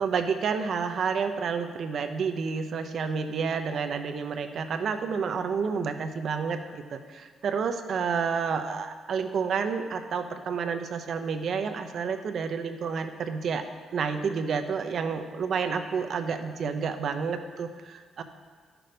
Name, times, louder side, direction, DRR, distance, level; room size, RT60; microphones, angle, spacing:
voice 1, 0.0-13.6 13.9-18.2, right 5 dB, 60° right, 7 dB, 0.8 m, -30 dB
11.0 x 6.2 x 5.1 m, 1.5 s
cardioid pair, 90°, 0 cm